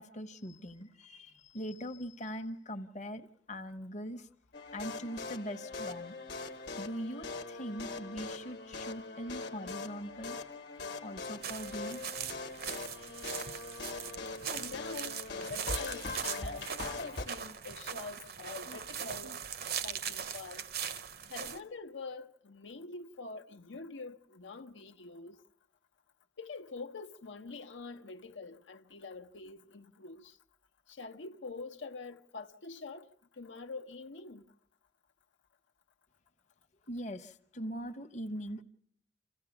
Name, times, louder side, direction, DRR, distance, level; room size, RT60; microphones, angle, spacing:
voice 1, 0.0-4.3 4.7-6.1 6.8-10.4 11.0-12.1 18.7-18.8 19.2-19.4 36.9-38.6, equal, 40° left, 0.9 m, -41 dB
sound 1, 4.5-17.3, left 3 dB, 60° left, 1.2 m, -41 dB
sound 2, 11.4-21.6, right 8 dB, 55° right, 0.7 m, -40 dB
voice 2, 14.4-16.7 17.0-19.3 19.8-20.7 21.3-25.4 26.4-30.4 30.9-33.1 33.4-34.4, left 4 dB, 85° left, 0.9 m, -45 dB
27.5 x 15.0 x 7.1 m
head